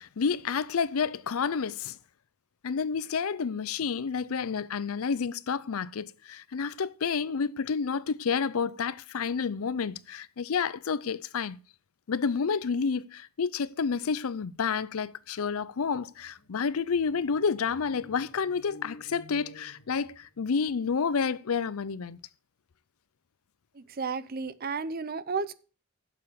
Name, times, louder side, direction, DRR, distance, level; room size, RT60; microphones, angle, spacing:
voice 1, 0.0-2.0 2.6-11.6 12.1-22.2, left 5 dB, 75° left, 0.5 m, -30 dB
sound 1, 15.2-15.3 15.5-20.6, left 2 dB, 50° left, 2.3 m, -53 dB
voice 2, 23.8-25.5, right 4 dB, 40° right, 0.6 m, -33 dB
8.5 x 6.9 x 6.7 m
head